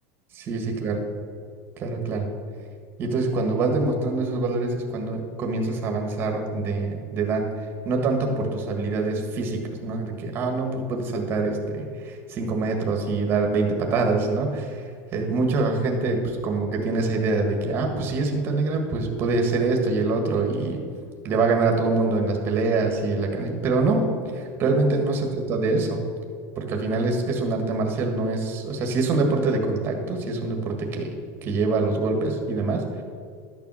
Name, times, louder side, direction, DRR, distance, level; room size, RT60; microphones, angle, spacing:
voice 1, 0.3-1.0 1.8-2.3 3.0-20.8 21.2-26.0 26.5-31.1 31.4-33.0, right 3 dB, 25° right, 3 dB, 1.6 m, -25 dB
12.5 x 7.0 x 6.3 m, 2.1 s
supercardioid pair, 175°, 8 cm